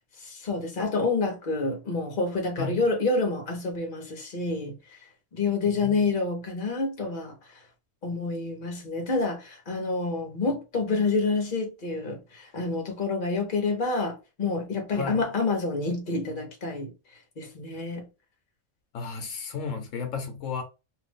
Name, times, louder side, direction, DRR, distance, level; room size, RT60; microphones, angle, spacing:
voice 1, 0.2-5.0 5.3-7.6 8.0-16.9 17.4-18.1, left 3 dB, 45° left, 1.1 m, -28 dB
voice 2, 5.8-6.1 14.9-15.3 18.9-20.6, left 5 dB, 75° left, 1.1 m, -33 dB
2.7 x 2.5 x 3.5 m
omnidirectional pair, 1.3 m